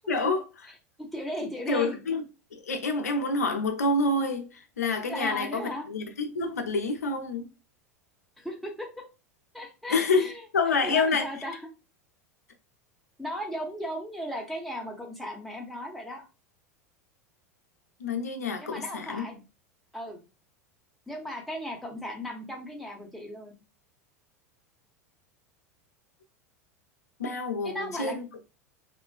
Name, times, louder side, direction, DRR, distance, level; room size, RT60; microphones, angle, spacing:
voice 1, 0.1-0.4 1.7-2.2 2.5-7.5 9.9-11.3 18.0-19.3 27.2-28.3, left 3 dB, 80° left, 0.4 m, -28 dB
voice 2, 1.1-2.0 5.1-5.9 8.4-9.0 9.5-10.4 10.8-11.6 13.2-16.2 18.6-19.4 19.9-20.2 21.1-23.5 27.6-28.1, equal, ahead, 0.7 m, -36 dB
2.4 x 2.2 x 2.4 m
figure-of-eight pair, 85°, 8 cm